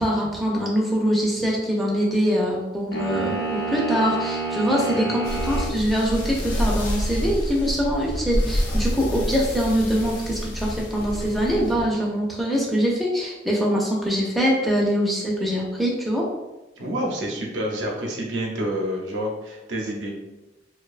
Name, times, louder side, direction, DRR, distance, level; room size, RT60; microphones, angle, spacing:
voice 1, 0.0-5.2 5.5-16.3, equal, ahead, -4 dB, 0.4 m, -23 dB
sound 1, 2.9-5.7, right 3 dB, 60° left, 0.8 m, -28 dB
voice 2, 4.7-5.1 16.8-20.1, equal, 85° right, -1 dB, 0.6 m, -28 dB
sound 2, 5.2-11.9, equal, 90° left, 0.6 m, -27 dB
2.6 x 2.2 x 2.4 m, 1.0 s
head